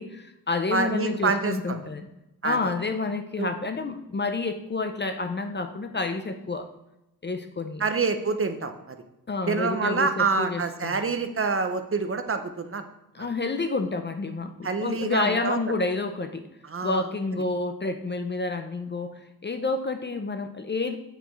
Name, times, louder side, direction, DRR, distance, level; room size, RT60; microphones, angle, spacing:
voice 1, 0.0-2.1 2.4-6.7 7.2-7.8 9.3-11.0 13.1-16.4 16.8-21.0, left 3 dB, 30° left, 7 dB, 0.4 m, -29 dB
voice 2, 0.7-1.8 2.4-2.7 3.4-3.5 7.8-9.0 9.5-12.8 13.2-13.3 14.6-15.6 16.7-17.0, right 4 dB, 35° right, 8 dB, 0.6 m, -27 dB
8.3 x 8.1 x 3.1 m, 0.92 s
wide cardioid pair, 180°, 38 cm